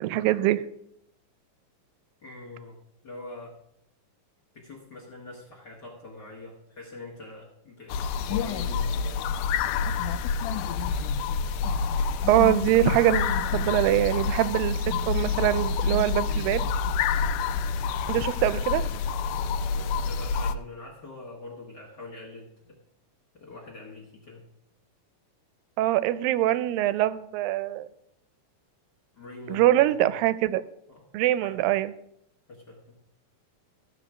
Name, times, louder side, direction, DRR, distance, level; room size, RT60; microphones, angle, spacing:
voice 1, 0.0-0.6 12.3-14.8 15.1-16.6 18.1-18.9 25.8-27.9 29.5-30.6 31.1-31.9, right 14 dB, 85° right, 15 dB, 2.2 m, -23 dB
voice 2, 2.2-3.6 4.5-8.0 8.3-9.3 19.6-22.8 23.3-24.4 29.1-30.1 30.9-31.1 31.4-31.6 32.5-33.0, left 2 dB, 45° left, -4 dB, 1.3 m, -44 dB
sound 1, 7.9-20.6, left 5 dB, 80° left, 1.9 m, -27 dB
14.0 x 5.0 x 6.0 m, 0.77 s
omnidirectional pair, 4.0 m